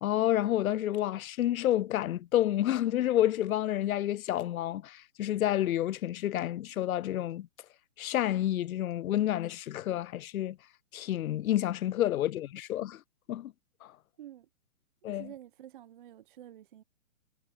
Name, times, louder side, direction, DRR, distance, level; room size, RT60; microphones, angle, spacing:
voice 1, 0.0-7.5 8.0-10.6 10.9-13.0 13.3-13.5 13.8-13.9 15.0-15.3, left 12 dB, 80° left, 0.5 m, -29 dB
voice 2, 14.2-14.5 15.0-16.8, right 12 dB, 40° right, 0.8 m, -49 dB
hypercardioid pair, 155°, 42 cm